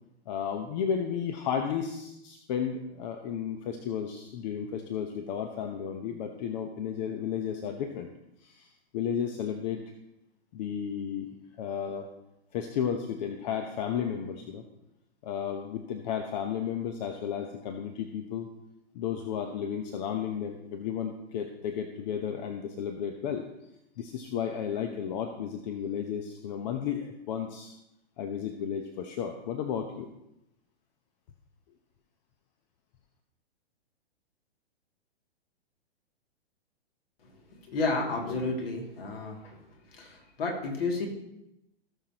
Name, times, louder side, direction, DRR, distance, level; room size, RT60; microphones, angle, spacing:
voice 1, 0.3-8.1 8.4-9.8 10.5-11.3 11.6-12.1 12.5-14.6 15.2-18.5 18.9-23.4 24.0-27.8 28.2-30.1, left 8 dB, 45° left, 6 dB, 0.9 m, -33 dB
voice 2, 37.2-39.6 39.9-41.1, left 3 dB, 60° left, 1 dB, 2.6 m, -32 dB
17.5 x 6.2 x 2.9 m, 0.86 s
hypercardioid pair, 115°, 32 cm